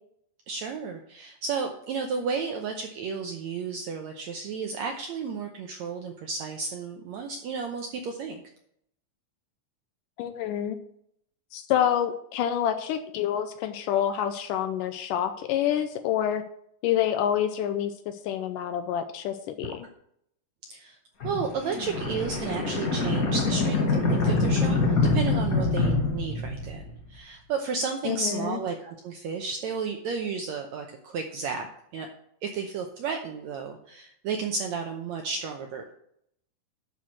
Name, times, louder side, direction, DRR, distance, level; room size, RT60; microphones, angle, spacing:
voice 1, 0.5-8.4 20.7-21.0 21.2-26.8 27.1-31.7 31.9-32.1 32.4-35.9, right 5 dB, 80° right, 4 dB, 1.6 m, -32 dB
voice 2, 10.2-10.8 11.5-16.4 16.8-19.9 28.0-28.6, left 10 dB, 80° left, 9 dB, 2.0 m, -27 dB
sound 1, 21.2-27.1, left 3 dB, 55° left, 0.9 m, -25 dB
11.0 x 4.6 x 6.2 m, 0.71 s
omnidirectional pair, 4.1 m